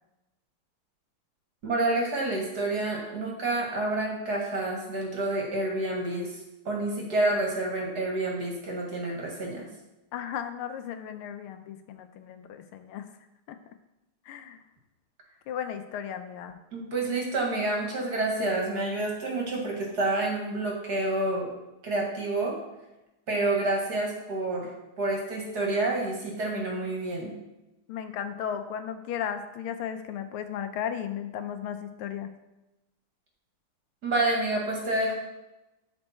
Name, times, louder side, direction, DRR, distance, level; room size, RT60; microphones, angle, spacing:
voice 1, 1.6-6.4 6.7-9.7 16.7-21.5 21.8-22.6 23.3-24.7 25.0-27.3 34.0-35.1, right 2 dB, 50° right, -1 dB, 2.2 m, -28 dB
voice 2, 10.1-13.1 13.5-13.6 14.3-14.6 15.5-16.6 27.9-32.3, left 8 dB, 85° left, 8 dB, 1.6 m, -35 dB
12.0 x 4.5 x 4.3 m, 0.98 s
omnidirectional pair, 2.4 m